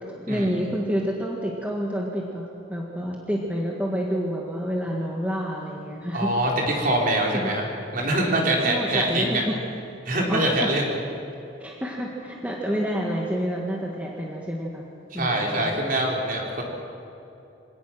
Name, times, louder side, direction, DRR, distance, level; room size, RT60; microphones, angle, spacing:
voice 1, 0.0-6.3 7.3-7.5 8.7-9.5 10.3-10.7 11.6-14.9 15.1-15.7, equal, 5° right, -2 dB, 1.8 m, -28 dB
voice 2, 6.1-7.6 7.9-9.4 10.0-11.0 15.1-16.6, right 1 dB, 45° right, -1 dB, 4.3 m, -24 dB
26.5 x 18.0 x 6.2 m, 2.8 s
head